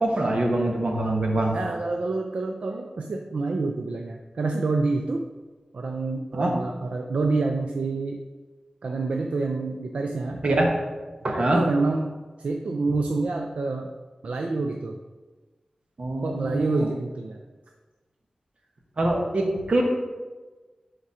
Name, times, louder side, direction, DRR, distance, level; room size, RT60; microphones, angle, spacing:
voice 1, 0.0-1.5 6.3-6.5 10.4-10.7 11.2-11.6 16.0-16.8 19.0-19.8, right 1 dB, 60° right, 1 dB, 1.1 m, -24 dB
voice 2, 1.5-5.3 5.7-8.2 8.8-10.4 11.2-13.9 14.2-15.0 16.2-17.4, right 3 dB, 75° right, 3 dB, 0.4 m, -27 dB
5.0 x 4.2 x 4.8 m, 1.3 s
wide cardioid pair, 70°, 2 cm